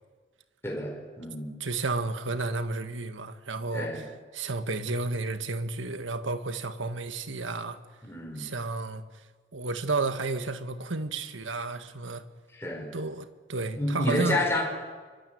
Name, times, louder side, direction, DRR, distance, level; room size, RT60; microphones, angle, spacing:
voice 1, 0.6-1.6 3.7-4.0 8.0-8.5 12.5-12.9 13.8-14.6, left 1 dB, 15° left, 5.4 m, -29 dB
voice 2, 1.6-4.0 4.3-7.8 8.4-9.0 9.5-12.2 12.9-14.4, right 3 dB, 85° right, 1.8 m, -32 dB
24.5 x 24.0 x 9.5 m
head